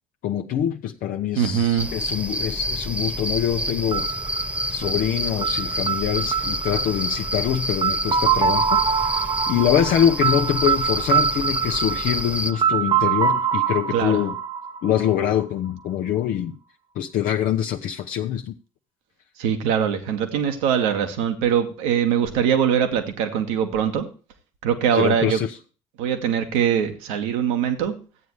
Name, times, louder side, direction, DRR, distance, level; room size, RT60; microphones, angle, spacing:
voice 1, 0.2-4.1 4.7-14.4 14.8-16.6 16.9-18.5 24.9-25.6, left 10 dB, 55° left, 0.8 m, -24 dB
voice 2, 1.3-1.9 13.9-14.2 19.4-24.0 24.6-25.4 26.0-27.9, right 8 dB, 70° right, 1.7 m, -22 dB
sound 1, 1.8-12.5, equal, 10° right, 1.3 m, -28 dB
sound 2, 3.9-15.7, right 7 dB, 30° right, 0.9 m, -24 dB
14.0 x 9.3 x 3.1 m
figure-of-eight pair, 55°, 17 cm